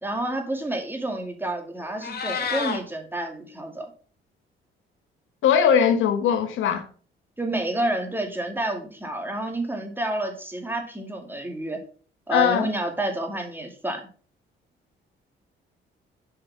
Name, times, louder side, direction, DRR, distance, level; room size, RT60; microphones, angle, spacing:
voice 1, 0.0-3.9 7.4-11.8 12.3-14.0, right 1 dB, 10° right, 2.4 m, -29 dB
Meow, 1.8-2.8, left 6 dB, 55° left, 2.2 m, -29 dB
voice 2, 5.4-6.8 12.3-12.7, left 8 dB, 80° left, 1.3 m, -20 dB
7.6 x 5.8 x 5.8 m
cardioid pair, 90°, 20 cm